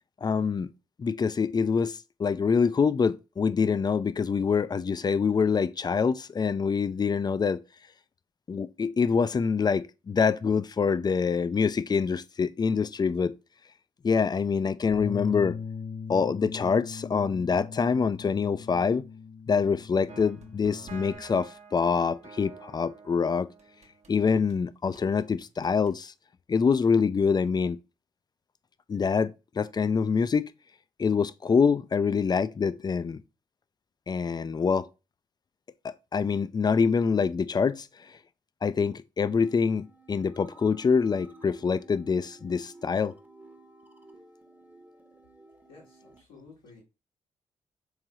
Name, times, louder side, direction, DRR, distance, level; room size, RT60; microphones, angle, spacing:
voice 1, 0.2-0.7 1.0-7.6 8.5-13.3 14.0-15.6 16.1-19.0 19.5-23.5 24.1-26.1 26.5-27.8 28.9-30.5 31.0-33.2 34.1-34.9 35.8-38.2 38.6-43.1, left 5 dB, 30° left, 0.4 m, -25 dB
Bass guitar, 14.9-21.2, left 5 dB, 65° left, 1.6 m, -40 dB
sound 1, 20.1-24.6 24.9-26.0, right 5 dB, 50° right, 0.9 m, -49 dB
sound 2, 39.2-46.2, right 2 dB, 10° right, 0.8 m, -53 dB
voice 2, 45.7-46.8, left 4 dB, 85° left, 1.4 m, -53 dB
3.6 x 3.2 x 2.9 m
hypercardioid pair, 40°, 14 cm